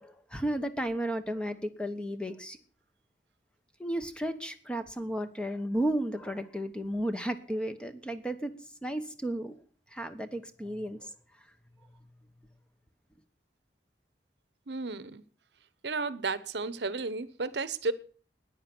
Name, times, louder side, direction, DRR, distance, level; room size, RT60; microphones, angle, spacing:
voice 1, 0.0-2.6 3.8-8.5 8.8-9.5 9.9-11.1, right 1 dB, 5° left, 1.1 m, -33 dB
voice 2, 14.7-15.2 15.8-17.9, right 3 dB, 70° right, 0.9 m, -33 dB
13.5 x 10.0 x 6.1 m
head